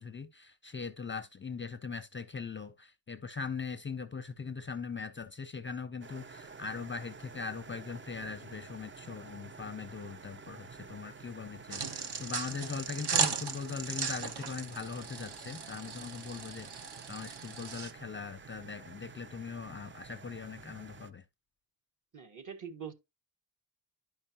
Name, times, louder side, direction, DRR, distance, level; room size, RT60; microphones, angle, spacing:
voice 1, 0.0-21.2, left 5 dB, 25° left, 0.5 m, -41 dB
sound 1, 6.0-21.1, right 5 dB, 30° right, 0.5 m, -51 dB
sound 2, 11.7-17.9, right 6 dB, 60° right, 1.1 m, -36 dB
voice 2, 22.1-22.9, right 7 dB, 45° right, 1.6 m, -43 dB
10.5 x 5.4 x 2.9 m
cardioid pair, 90°, 44 cm